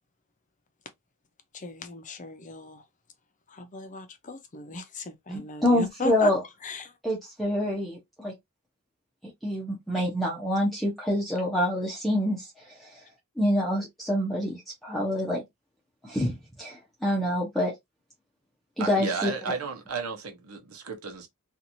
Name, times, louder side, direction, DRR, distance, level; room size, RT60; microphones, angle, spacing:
voice 1, 1.5-2.8 3.5-6.3 6.6-6.9, left 3 dB, 35° left, 0.6 m, -36 dB
voice 2, 5.3-6.4 7.0-8.3 9.4-13.0 13.4-15.4 16.0-17.7 18.8-19.3, left 1 dB, ahead, 0.7 m, -27 dB
voice 3, 18.8-21.3, right 5 dB, 85° right, 0.8 m, -33 dB
2.9 x 2.5 x 2.6 m
head